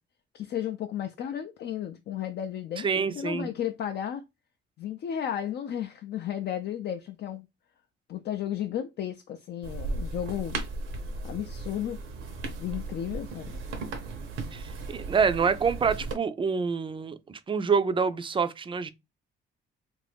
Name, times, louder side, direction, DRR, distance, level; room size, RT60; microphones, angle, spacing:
voice 1, 0.3-4.2 4.8-7.5 8.1-10.6 11.2-12.0 12.6-13.6, left 10 dB, 60° left, 0.4 m, -33 dB
voice 2, 2.8-3.5 14.5-18.9, right 5 dB, 25° right, 0.4 m, -27 dB
sound 1, 9.6-16.2, right 3 dB, 85° right, 0.8 m, -36 dB
2.7 x 2.5 x 3.4 m
cardioid pair, 90°, 20 cm